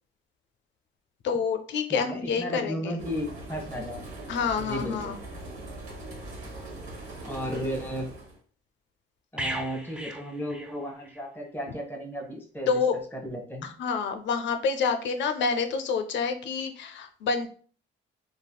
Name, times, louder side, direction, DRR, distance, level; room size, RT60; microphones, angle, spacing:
voice 1, 1.2-3.0 4.3-5.2 7.5-7.6 12.7-13.0 13.6-17.5, left 5 dB, 70° left, 6 dB, 0.4 m, -28 dB
voice 2, 1.9-4.1 4.6-5.1 7.2-8.1 9.3-12.8 13.1-13.7, equal, 10° left, 1 dB, 0.8 m, -34 dB
sound 1, 3.0-8.4, right 2 dB, 90° right, 1.0 m, -41 dB
sound 2, 9.4-11.3 11.6-11.8, right 1 dB, 5° right, 0.3 m, -36 dB
3.4 x 2.0 x 2.2 m, 0.44 s
cardioid pair, 90°, 20 cm